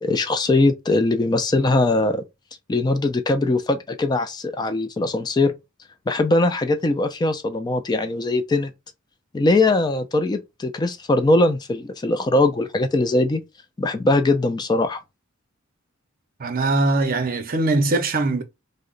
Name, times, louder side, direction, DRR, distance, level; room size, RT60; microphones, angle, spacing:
voice 1, 0.0-2.2 2.7-5.5 6.1-8.7 9.3-13.4 13.8-15.0, left 2 dB, 20° left, 0.3 m, -21 dB
voice 2, 16.4-18.4, right 2 dB, 45° right, 0.6 m, -21 dB
2.9 x 2.1 x 3.7 m
head